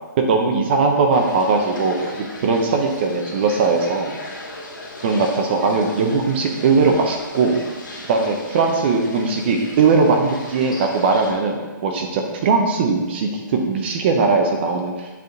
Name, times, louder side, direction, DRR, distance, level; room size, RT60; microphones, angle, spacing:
voice 1, 0.2-4.2 5.0-7.6 8.1-11.6 11.8-15.1, right 4 dB, 30° right, 3 dB, 0.6 m, -19 dB
sound 1, 1.1-11.3, left 2 dB, 70° left, 2.0 m, -38 dB
8.2 x 3.6 x 3.8 m, 1.3 s
hypercardioid pair, 165°, 11 cm